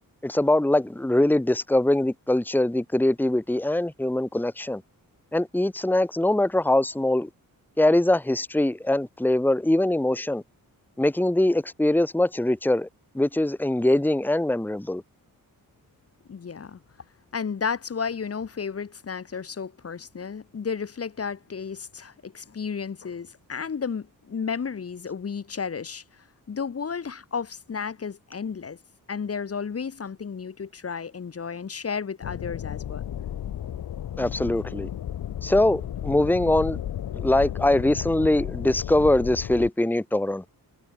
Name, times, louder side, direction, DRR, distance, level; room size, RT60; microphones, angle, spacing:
voice 1, 0.2-4.8 5.3-7.3 7.8-10.4 11.0-12.9 13.2-15.0 34.2-34.9 35.4-36.8 37.1-40.4, left 1 dB, 5° left, 1.7 m, -22 dB
voice 2, 16.3-16.8 17.3-26.0 26.5-28.8 29.1-33.0, left 6 dB, 40° left, 2.1 m, -33 dB
sound 1, 32.2-39.7, left 10 dB, 75° left, 1.5 m, -33 dB
wide cardioid pair, 120°, 35 cm